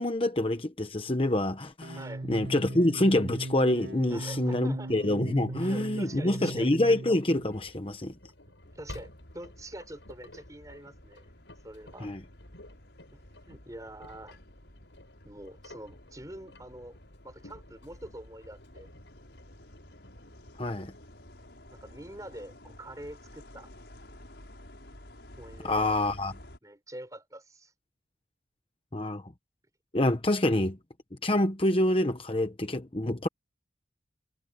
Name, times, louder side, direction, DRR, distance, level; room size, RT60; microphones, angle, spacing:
voice 1, 0.0-2.0 2.3-8.1 12.0-12.2 20.6-20.9 25.6-26.3 28.9-29.3 29.9-30.8 31.2-33.3, left 1 dB, 30° left, 1.0 m, -26 dB
sound 1, 1.8-7.5, right 2 dB, 60° right, 1.8 m, -38 dB
voice 2, 1.9-2.3 4.1-4.9 5.6-6.7 8.7-11.3 11.6-12.2 13.1-13.2 13.5-14.4 15.2-17.0 17.2-18.9 21.7-23.7 25.4-26.0 26.6-27.7, right 1 dB, 20° right, 5.4 m, -45 dB
Engine, 7.4-21.5, left 1 dB, 90° left, 6.9 m, -52 dB
sound 2, 8.6-26.6, left 1 dB, 70° left, 6.2 m, -52 dB
head